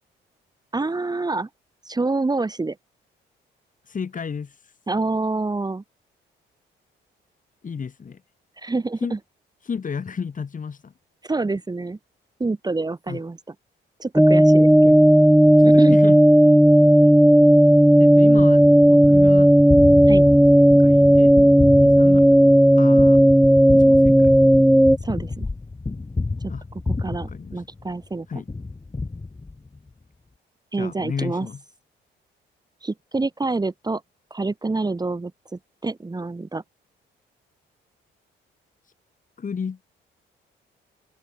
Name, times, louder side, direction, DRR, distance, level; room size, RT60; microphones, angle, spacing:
voice 1, 0.7-1.5 1.9-2.8 4.9-5.8 8.6-9.2 11.2-12.0 12.4-13.5 14.0-14.9 15.6-16.0 20.1-20.2 25.0-25.5 26.4-26.5 27.0-28.3 30.7-31.5 32.8-34.0 34.3-36.6, right 3 dB, 20° right, 2.2 m, -27 dB
voice 2, 3.9-4.5 7.6-8.2 9.0-9.2 9.7-10.9 13.1-13.2 14.8-15.0 15.6-16.2 18.0-19.5 20.1-21.3 21.8-22.3 22.8-23.3 23.7-24.3 26.5-26.7 27.3-27.6 28.3-28.5 30.8-31.6 39.4-39.8, left 6 dB, 40° left, 4.7 m, -32 dB
sound 1, 14.2-25.0, equal, ahead, 0.8 m, -13 dB
Gunshot gunfire, 18.6-28.1 28.5-29.9, left 3 dB, 20° left, 5.7 m, -30 dB
open air
cardioid pair, 90°, 20 cm